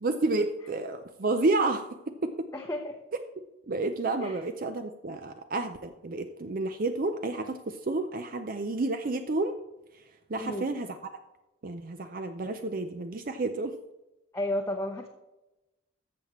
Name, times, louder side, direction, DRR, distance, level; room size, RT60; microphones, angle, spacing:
voice 1, 0.0-2.5 3.7-9.6 10.3-11.0 11.6-13.7, right 2 dB, 45° right, 8 dB, 0.5 m, -30 dB
voice 2, 2.5-3.0 4.2-4.4 10.4-10.7 14.3-15.1, left 1 dB, 15° left, 1 dB, 0.7 m, -32 dB
13.5 x 7.3 x 3.1 m, 0.98 s
head